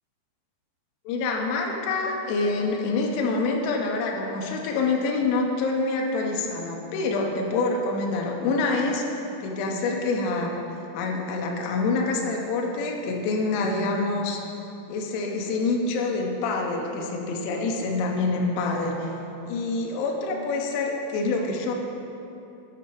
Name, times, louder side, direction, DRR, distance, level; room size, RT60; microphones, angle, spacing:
voice 1, 1.1-9.0 9.4-10.6 10.9-14.5 14.9-19.1 19.4-21.7, left 3 dB, 80° left, 0 dB, 3.0 m, -26 dB
8.1 x 5.8 x 4.6 m, 2.8 s
omnidirectional pair, 5.7 m